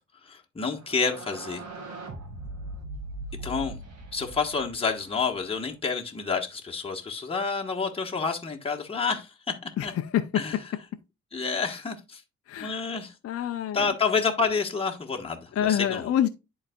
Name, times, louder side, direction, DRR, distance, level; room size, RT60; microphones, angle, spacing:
voice 1, 0.2-1.6 3.4-3.8 4.1-9.3 9.8-9.9 10.3-10.6 11.3-12.2 12.6-13.1 13.7-16.1, left 5 dB, 20° left, 1.2 m, -29 dB
sound 1, 0.7-5.6, right 2 dB, 60° right, 2.0 m, -40 dB
voice 2, 9.8-10.2 12.5-12.8 13.2-13.8 15.6-16.3, left 10 dB, 50° left, 0.6 m, -26 dB
10.5 x 4.0 x 2.3 m
cardioid pair, 90°, 30 cm